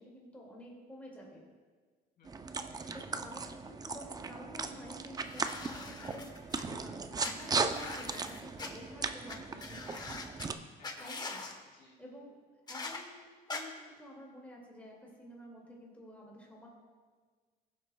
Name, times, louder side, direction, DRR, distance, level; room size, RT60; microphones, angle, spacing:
voice 1, 0.0-1.5 2.9-10.0 11.0-11.4 12.0-12.4 12.7-16.7, equal, 10° left, -3 dB, 2.2 m, -51 dB
voice 2, 2.2-3.1 10.4-10.5 10.8-11.2 11.6-12.0, left 3 dB, 65° left, -2 dB, 2.6 m, -61 dB
sound 1, 2.3-10.5, right 4 dB, 20° right, 0.5 m, -37 dB
sound 2, 5.2-6.6 7.2-8.7 9.3-9.4 9.6-10.5 10.8-11.5 12.7-13.0 13.5-13.6, left 3 dB, 25° left, 1.0 m, -43 dB
16.0 x 7.6 x 2.2 m, 1.5 s
cardioid pair, 110°, 17 cm